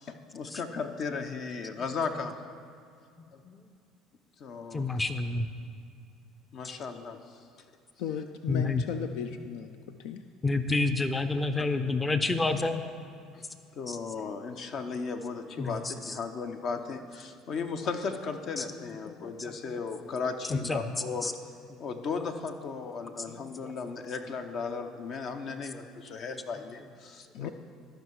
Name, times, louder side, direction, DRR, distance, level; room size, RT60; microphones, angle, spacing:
voice 1, 0.0-2.3 4.4-5.0 6.5-7.2 11.6-11.7 13.3-13.5 13.8-21.3 21.8-27.5, left 5 dB, 55° left, 7 dB, 0.7 m, -36 dB
voice 2, 4.7-5.5 8.4-8.8 10.4-12.8 13.9-14.0 15.6-16.2 18.6-19.7 20.5-21.0 21.2-21.3 21.7-21.8 23.3-24.1 25.7-25.8, left 3 dB, 20° left, 9 dB, 0.6 m, -30 dB
voice 3, 8.0-9.7 10.0-10.2 27.3-27.5, left 8 dB, 75° left, 8 dB, 0.4 m, -36 dB
13.0 x 5.6 x 4.7 m, 2.3 s
supercardioid pair, 80°, 0 cm